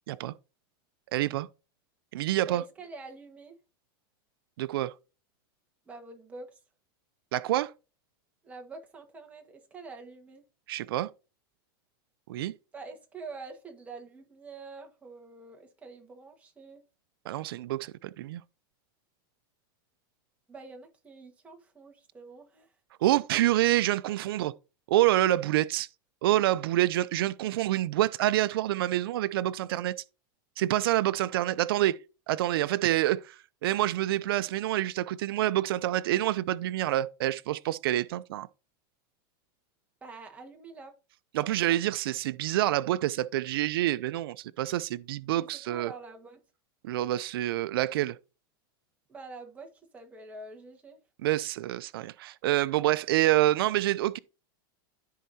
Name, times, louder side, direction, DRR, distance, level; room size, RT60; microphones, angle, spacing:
voice 1, 1.1-1.5 2.1-2.6 4.6-4.9 7.3-7.7 10.7-11.1 12.3-12.5 17.3-18.4 23.0-24.5 24.9-25.9 26.2-29.9 30.6-32.0 32.3-38.5 41.3-45.9 46.8-48.2 51.2-54.2, right 14 dB, 85° right, 0.4 m, -27 dB
voice 2, 2.5-3.6 5.8-6.6 8.4-10.4 12.7-16.8 20.5-22.7 40.0-40.9 41.4-41.8 45.4-46.4 49.1-51.0, right 3 dB, 10° right, 1.5 m, -46 dB
13.5 x 4.7 x 2.8 m
supercardioid pair, 155°, 12 cm